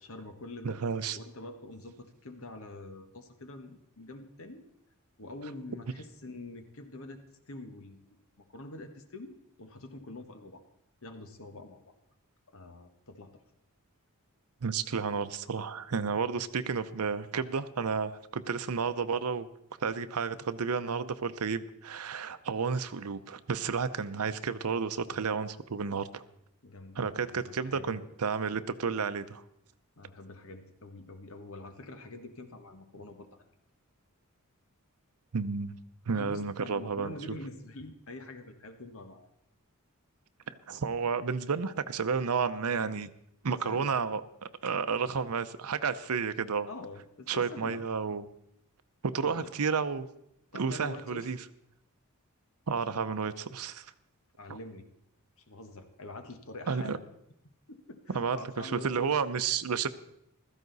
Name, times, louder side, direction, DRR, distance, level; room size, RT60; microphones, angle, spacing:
voice 1, 0.0-0.8 1.1-4.6 5.2-8.0 8.4-10.7 11.0-11.9 12.5-13.3 25.1-25.4 26.6-28.1 30.0-33.4 36.1-39.3 43.6-44.0 46.7-47.8 49.2-49.4 50.5-51.3 54.4-54.9 55.4-57.1 57.7-59.1, left 2 dB, 65° left, 7 dB, 1.4 m, -45 dB
voice 2, 0.6-1.2 14.6-19.5 19.8-26.2 27.0-29.4 35.3-35.7 36.1-37.1 40.7-43.1 43.4-46.7 47.3-48.3 49.0-50.1 50.5-51.4 52.7-53.8 56.7-57.0 58.1-59.9, right 5 dB, 85° right, 11 dB, 0.7 m, -31 dB
15.5 x 13.5 x 4.0 m, 0.77 s
head